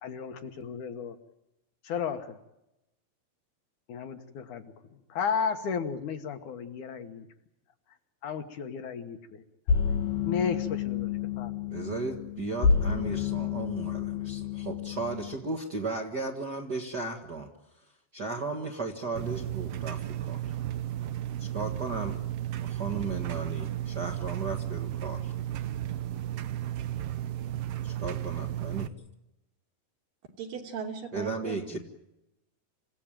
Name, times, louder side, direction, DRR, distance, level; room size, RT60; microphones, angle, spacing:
voice 1, 0.0-1.2 1.8-2.4 3.9-7.3 8.2-9.4 10.2-11.5, left 6 dB, 65° left, 7 dB, 2.6 m, -34 dB
sound 1, 9.7-15.3, left 6 dB, 85° left, 3.7 m, -29 dB
voice 2, 11.7-17.5 17.8-17.9 18.1-20.6 21.4-22.2 22.6-25.3 27.8-28.9 31.1-31.8, right 3 dB, 40° right, 1 dB, 1.8 m, -35 dB
sound 2, 19.2-28.9, right 12 dB, 85° right, 1.3 m, -34 dB
voice 3, 30.4-31.8, right 6 dB, 70° right, 3 dB, 4.6 m, -38 dB
27.5 x 17.0 x 9.1 m, 0.90 s
omnidirectional pair, 4.2 m